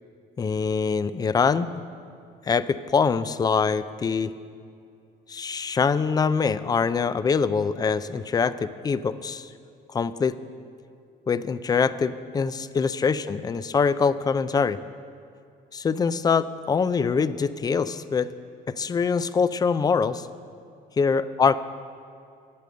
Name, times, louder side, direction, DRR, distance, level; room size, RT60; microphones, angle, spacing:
voice 1, 0.4-1.7 2.5-4.3 5.3-9.5 9.9-10.4 11.3-14.8 15.7-18.3 18.7-20.3 21.0-21.6, left 5 dB, 25° left, 15 dB, 0.4 m, -24 dB
9.2 x 8.5 x 7.7 m, 2.5 s
cardioid pair, 110°, 17 cm